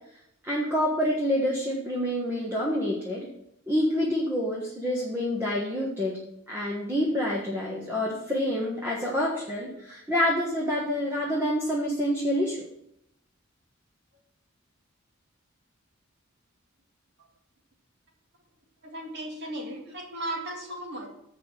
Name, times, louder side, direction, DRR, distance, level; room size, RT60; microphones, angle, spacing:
voice 1, 0.4-3.3 3.7-6.2 6.5-12.7, equal, 10° right, -4 dB, 1.4 m, -27 dB
voice 2, 18.8-21.1, right 1 dB, 55° right, 0 dB, 2.3 m, -36 dB
7.6 x 5.6 x 7.4 m, 0.77 s
head